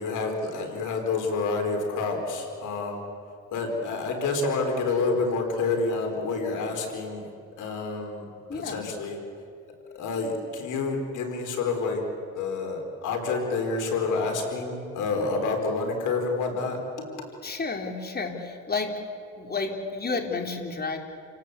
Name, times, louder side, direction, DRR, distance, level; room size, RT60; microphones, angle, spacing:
voice 1, 0.0-3.0 3.5-7.3 7.6-9.2 9.9-12.0 12.3-17.1, left 3 dB, 80° left, 3 dB, 4.6 m, -28 dB
voice 2, 17.4-18.9 19.4-21.0, left 4 dB, 30° left, 3 dB, 3.7 m, -31 dB
29.5 x 18.0 x 8.4 m, 2.4 s
cardioid pair, 90°, 30 cm